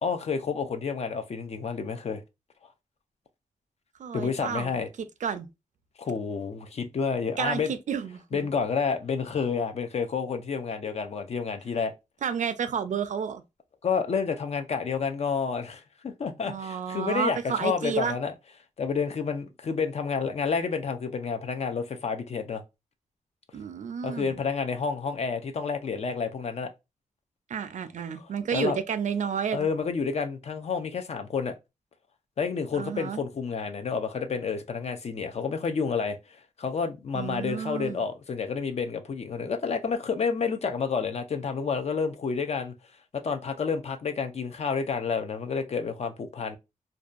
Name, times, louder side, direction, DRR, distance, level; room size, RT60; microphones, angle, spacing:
voice 1, 0.0-2.2 4.1-4.9 6.0-7.7 8.3-11.9 13.8-18.3 18.8-22.6 24.0-26.7 28.5-28.8 29.5-31.5 32.4-42.7 43.1-46.6, left 5 dB, 50° left, 0.4 m, -29 dB
voice 2, 4.0-4.7 5.2-5.5 7.4-8.5 12.2-13.4 16.4-18.2 23.5-24.4 27.5-29.7 32.7-33.2 37.1-38.0, right 7 dB, 65° right, 0.4 m, -31 dB
2.6 x 2.2 x 2.4 m
wide cardioid pair, 115°, 14 cm